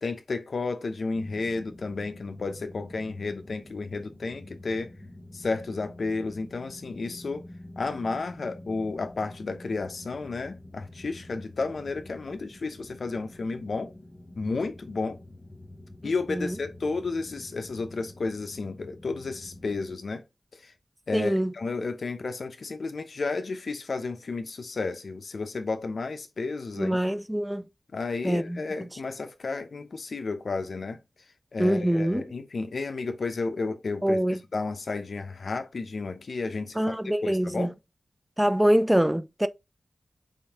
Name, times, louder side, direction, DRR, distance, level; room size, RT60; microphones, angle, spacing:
voice 1, 0.0-4.9 5.3-7.4 7.8-13.9 14.4-15.2 16.0-20.2 20.5-20.7 21.1-27.0 27.9-31.0 31.5-34.2 34.5-37.0 37.2-37.7, left 3 dB, 70° left, 0.7 m, -32 dB
sound 1, 1.1-19.9, left 1 dB, 10° left, 0.9 m, -47 dB
voice 2, 21.1-21.5 26.7-27.6 28.2-28.9 31.6-32.2 34.0-34.4 36.7-37.7 38.4-39.5, equal, 10° right, 0.3 m, -24 dB
5.1 x 2.7 x 3.5 m
wide cardioid pair, 75°, 0 cm